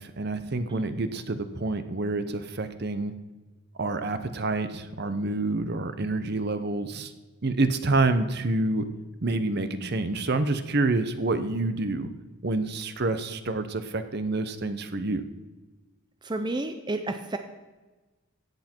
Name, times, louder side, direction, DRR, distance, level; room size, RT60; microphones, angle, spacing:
voice 1, 0.0-3.1 3.8-7.1 7.4-8.9 9.2-12.1 12.4-15.2, right 2 dB, 50° right, 10 dB, 0.8 m, -27 dB
voice 2, 16.2-17.4, right 2 dB, 20° right, 7 dB, 0.5 m, -31 dB
15.5 x 8.2 x 4.5 m, 1.2 s
head